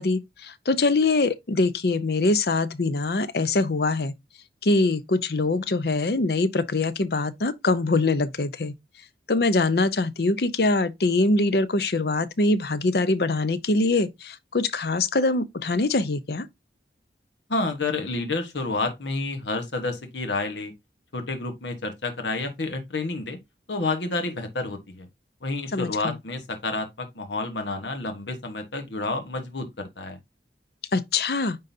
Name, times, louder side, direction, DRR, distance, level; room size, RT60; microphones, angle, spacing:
voice 1, 0.0-4.1 4.6-8.7 9.3-16.5 25.7-26.2 30.9-31.6, left 3 dB, 60° left, 0.6 m, -23 dB
voice 2, 17.5-20.7 21.1-23.4 23.7-25.1 25.4-30.2, left 3 dB, 80° left, 1.2 m, -29 dB
9.5 x 3.8 x 2.7 m
head